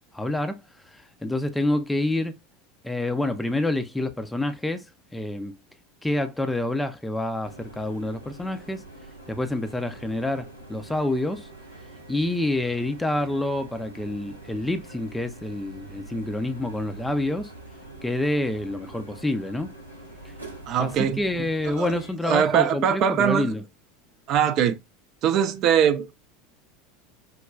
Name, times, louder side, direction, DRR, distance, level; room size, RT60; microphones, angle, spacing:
voice 1, 0.1-0.6 0.9-2.4 2.8-4.9 5.1-5.6 6.0-8.8 9.3-11.5 12.1-17.5 18.0-19.7 20.2-20.3 20.8-23.6, left 1 dB, 5° left, 0.5 m, -27 dB
sound 1, 7.4-22.1, right 2 dB, 85° right, 0.7 m, -44 dB
voice 2, 20.7-21.2 21.7-21.9 22.2-23.5 24.3-24.8 25.2-26.1, right 8 dB, 45° right, 0.5 m, -22 dB
4.9 x 2.2 x 2.2 m
figure-of-eight pair, 75°, 0 cm